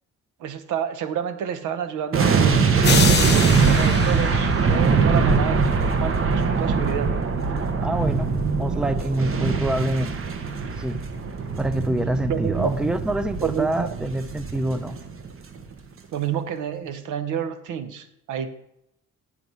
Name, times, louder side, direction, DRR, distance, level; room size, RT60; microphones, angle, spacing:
voice 1, 0.4-7.2 12.3-12.7 13.4-13.9 16.1-18.5, right 8 dB, 80° right, 11 dB, 0.8 m, -29 dB
sound 1, 2.1-15.3 15.6-15.7, right 5 dB, 45° right, 1.1 m, -22 dB
sound 2, 2.8-5.2, left 6 dB, 35° left, 0.9 m, -26 dB
voice 2, 7.8-8.3 8.6-10.1 10.8-11.0 11.6-15.0, right 1 dB, 5° right, 12 dB, 0.5 m, -26 dB
9.2 x 4.8 x 5.5 m, 0.80 s
cardioid pair, 90°, 30 cm